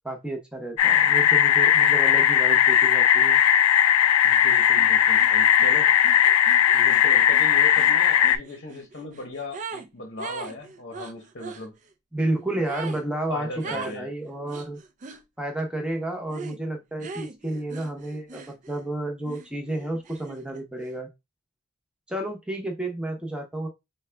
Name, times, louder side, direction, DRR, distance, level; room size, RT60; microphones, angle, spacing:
voice 1, 0.0-3.4 12.1-14.8 15.4-21.1 22.1-23.7, right 1 dB, 5° right, 0.7 m, -31 dB
sound 1, 0.8-8.4, left 10 dB, 80° left, 0.3 m, -18 dB
voice 2, 4.2-6.0 6.7-11.8 13.3-14.1, left 2 dB, 45° left, 0.9 m, -37 dB
sound 2, 4.8-4.9 5.2-9.9 10.2-11.7 12.7-13.1 13.6-14.0 14.5-15.2 16.3-16.6 17.0-18.9 19.3-20.6, right 5 dB, 35° right, 0.4 m, -40 dB
4.6 x 2.2 x 3.3 m
head